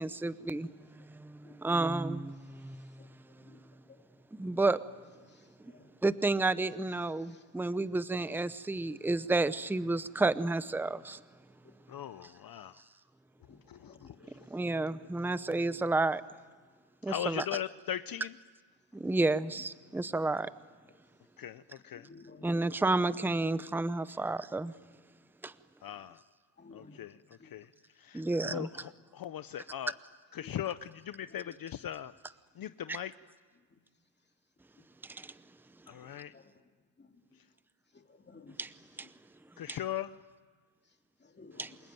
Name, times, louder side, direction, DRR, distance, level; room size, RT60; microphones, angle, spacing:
voice 1, 0.0-2.9 4.4-4.8 5.6-5.7 6.0-11.2 14.5-16.2 17.0-17.4 18.9-20.5 22.4-24.7 25.4-25.5 28.1-28.7 35.0-35.3 38.6-38.7 39.0-39.1 39.7-39.8 41.6-41.8, right 2 dB, 5° right, 14 dB, 0.7 m, -31 dB
voice 2, 11.9-12.8 13.5-14.5 17.0-18.4 21.4-22.1 25.8-26.2 26.7-29.9 30.3-32.1 32.6-33.2 35.9-36.3 37.3-37.5 39.6-40.2, left 10 dB, 50° left, 12 dB, 0.7 m, -40 dB
voice 3, 13.8-14.3 22.0-22.7 26.6-27.0 36.3-36.4 38.1-38.5 41.2-41.7, left 3 dB, 25° left, 4 dB, 2.5 m, -54 dB
28.5 x 21.5 x 9.3 m, 1.5 s
cardioid pair, 115°, 45 cm